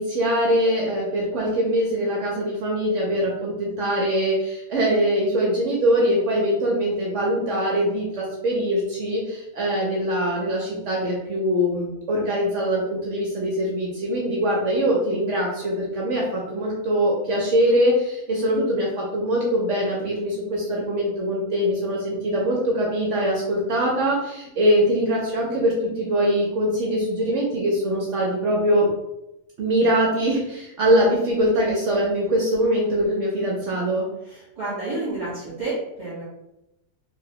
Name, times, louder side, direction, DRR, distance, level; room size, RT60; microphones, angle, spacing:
voice 1, 0.0-28.9 29.6-34.1, equal, 60° right, -3 dB, 1.0 m, -22 dB
voice 2, 34.3-36.2, right 2 dB, 30° right, -11 dB, 1.3 m, -30 dB
3.3 x 2.9 x 2.9 m, 0.88 s
omnidirectional pair, 1.5 m